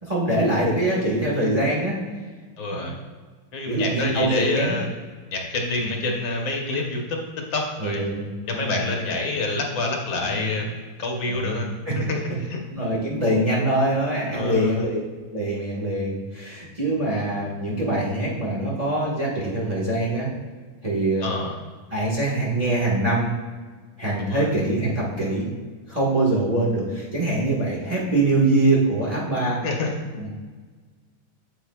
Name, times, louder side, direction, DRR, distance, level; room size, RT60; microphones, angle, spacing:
voice 1, 0.0-2.0 2.7-2.9 3.7-4.8 5.8-6.0 7.8-8.9 10.3-10.6 11.3-12.1 12.7-15.0 15.3-20.3 20.8-21.5 21.9-23.3 24.0-25.5 25.9-29.6 30.2-30.3, right 1 dB, 20° right, -5 dB, 1.5 m, -24 dB
voice 2, 2.6-2.9 3.5-4.9 5.3-7.2 7.5-8.0 8.5-11.7 12.0-12.2 12.5-12.6 14.3-14.9 21.2-21.5 24.3-24.5 29.6-29.9, left 3 dB, 70° left, 0 dB, 1.8 m, -27 dB
8.6 x 8.0 x 2.4 m, 1.4 s
omnidirectional pair, 2.2 m